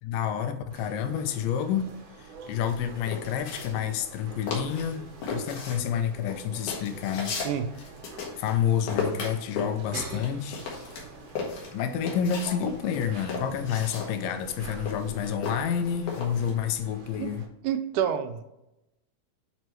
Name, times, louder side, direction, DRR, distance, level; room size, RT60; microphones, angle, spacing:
voice 1, 0.0-1.9 2.2-7.4 8.4-10.7 11.7-17.5, left 8 dB, 90° left, 8 dB, 2.3 m, -29 dB
sound 1, 0.7-17.5, right 4 dB, 60° right, 1.7 m, -46 dB
sound 2, 2.7-4.2 4.5-5.0 5.2-8.6 8.9-12.6 12.9-16.5, left 4 dB, 65° left, 2.9 m, -35 dB
voice 2, 7.3-7.7 17.2-17.3 17.6-18.4, right 9 dB, 80° right, 9 dB, 2.0 m, -28 dB
8.9 x 4.5 x 3.1 m, 0.91 s
omnidirectional pair, 3.7 m